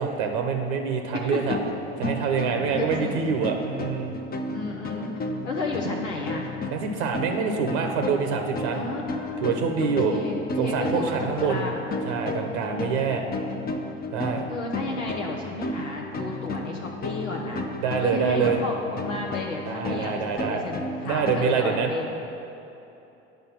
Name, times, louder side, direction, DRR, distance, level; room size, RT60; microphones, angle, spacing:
voice 1, 0.0-1.6 2.0-4.1 6.7-8.8 9.4-10.1 10.6-11.7 12.0-13.2 14.1-14.4 17.8-18.6 19.7-20.6 21.0-21.9, right 6 dB, 70° right, 4 dB, 0.8 m, -26 dB
sound 1, 1.4-21.4, left 2 dB, 25° left, 0.7 m, -33 dB
voice 2, 2.8-3.3 4.5-5.1 5.4-6.5 8.7-11.9 12.7-13.0 13.5-13.7 14.5-22.2, left 3 dB, 85° left, -1 dB, 0.8 m, -33 dB
9.4 x 5.3 x 5.8 m, 2.9 s
hypercardioid pair, 70°, 36 cm